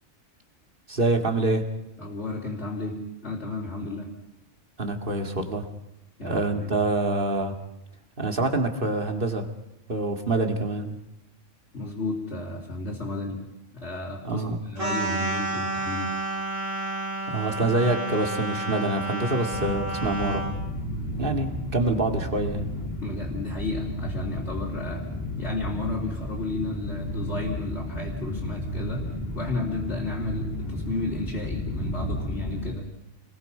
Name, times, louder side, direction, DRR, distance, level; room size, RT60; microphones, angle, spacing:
voice 1, 0.9-1.6 4.8-5.7 6.2-7.5 8.2-9.5 9.9-11.0 14.2-14.6 17.3-20.4 21.2-22.7, right 2 dB, 45° right, 5 dB, 2.2 m, -26 dB
voice 2, 2.0-4.1 6.2-6.8 11.7-13.4 13.7-16.1 23.0-25.1 25.4-32.9, left 2 dB, 60° left, -4 dB, 3.6 m, -33 dB
sound 1, 14.8-20.6, right 2 dB, 90° right, 5.3 m, -30 dB
sound 2, 19.5-32.7, left 1 dB, 15° left, 3.4 m, -33 dB
30.0 x 21.0 x 5.5 m, 0.87 s
omnidirectional pair, 1.3 m